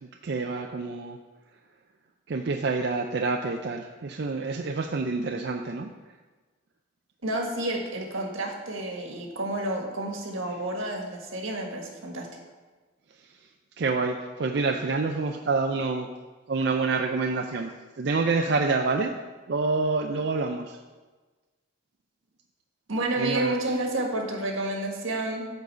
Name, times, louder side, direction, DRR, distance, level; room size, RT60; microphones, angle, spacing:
voice 1, 0.2-1.2 2.3-5.9 13.8-16.1 16.5-19.1 19.5-20.8 23.2-23.5, right 3 dB, 55° right, 4 dB, 0.4 m, -27 dB
voice 2, 7.2-12.3 22.9-25.5, right 1 dB, 85° right, 1 dB, 1.7 m, -30 dB
9.8 x 4.0 x 6.7 m, 1.3 s
head